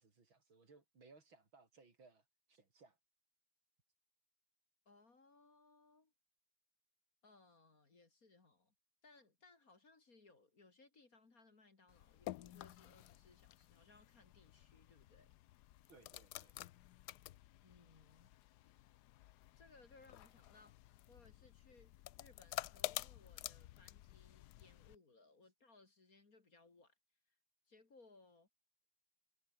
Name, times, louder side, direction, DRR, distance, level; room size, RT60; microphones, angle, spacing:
voice 1, 0.0-3.0 15.9-16.5, right 4 dB, 65° right, 4.7 m, -65 dB
voice 2, 4.9-6.1 7.2-8.7 9.0-15.3 17.6-18.3 18.6-18.8 19.5-20.8 21.1-26.9 27.3-27.4 27.7-28.5, left 3 dB, 40° left, 2.9 m, -66 dB
sound 1, 11.9-25.0, left 15 dB, 80° left, 0.9 m, -51 dB
omnidirectional pair, 2.4 m